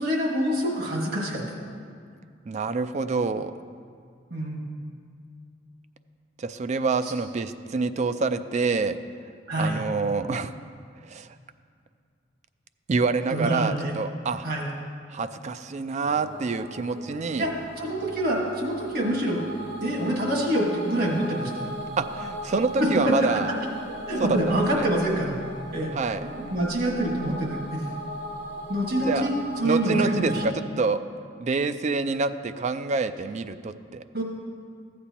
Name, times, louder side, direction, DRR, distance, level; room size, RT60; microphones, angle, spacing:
voice 1, 0.0-1.4 4.3-4.6 9.5-9.8 13.3-13.9 14.4-14.7 17.4-19.4 19.8-21.7 23.0-23.1 24.1-25.3 25.7-25.9 26.2-27.8 28.7-30.4 34.1-34.2, right 1 dB, 55° right, -1 dB, 1.7 m, -26 dB
voice 2, 2.5-3.5 6.4-9.0 9.6-10.5 11.1-11.3 12.9-14.5 15.1-17.5 22.0-23.5 24.2-24.9 25.9-26.2 29.0-29.3 29.6-31.0 31.4-34.0, right 4 dB, 40° right, 11 dB, 0.3 m, -27 dB
sound 1, 16.0-30.5, equal, 75° right, 2.0 m, -38 dB
15.0 x 8.3 x 2.9 m, 2.2 s
head